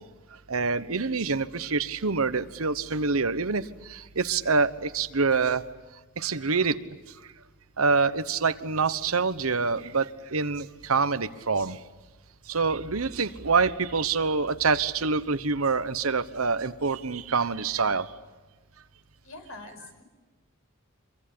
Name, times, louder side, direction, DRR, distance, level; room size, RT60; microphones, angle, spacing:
voice 1, 0.5-3.6 3.9-5.6 6.2-6.8 7.8-11.8 12.5-18.1, right 4 dB, 85° right, 13 dB, 1.2 m, -26 dB
voice 2, 19.2-20.0, left 2 dB, 75° left, 7 dB, 5.2 m, -44 dB
26.5 x 23.5 x 8.7 m, 1.3 s
head